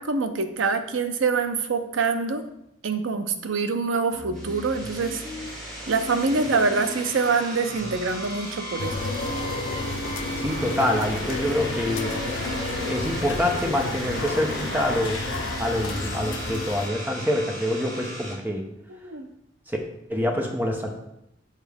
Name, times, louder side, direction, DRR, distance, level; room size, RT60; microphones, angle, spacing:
voice 1, 0.0-2.4 2.8-5.2 5.9-8.9 19.0-19.3, right 4 dB, 85° right, 8 dB, 0.6 m, -25 dB
sound 1, 4.1-16.5, right 1 dB, 65° right, 1.9 m, -39 dB
sound 2, 4.3-18.3, right 1 dB, 45° right, 2.5 m, -36 dB
sound 3, 8.8-16.9, left 4 dB, 75° left, 0.5 m, -32 dB
voice 2, 10.4-12.2 12.9-15.3 15.6-18.6 19.7-19.8 20.1-20.9, left 1 dB, 10° right, 2 dB, 0.7 m, -26 dB
6.6 x 4.9 x 3.5 m, 0.82 s
head